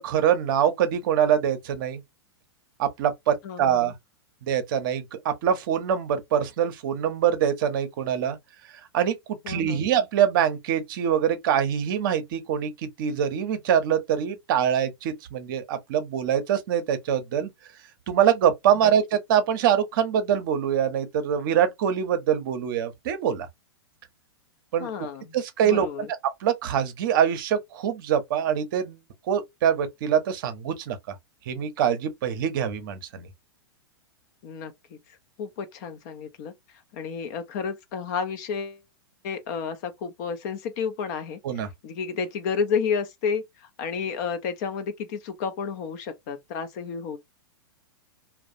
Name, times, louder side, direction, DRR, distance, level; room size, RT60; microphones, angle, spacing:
voice 1, 0.0-2.0 2.8-3.9 4.4-8.4 8.9-17.5 18.1-23.5 24.7-24.9 25.3-25.9 26.4-29.0 29.3-31.0 31.5-33.3 41.4-41.7, right 9 dB, 55° right, 0.6 m, -24 dB
voice 2, 3.4-3.9 9.4-9.9 24.8-25.4 25.6-26.1 34.4-34.7 35.4-36.5 36.9-38.8 39.2-41.4 41.8-47.2, left 6 dB, 45° left, 0.5 m, -31 dB
2.3 x 2.1 x 2.6 m
figure-of-eight pair, 105°, 14 cm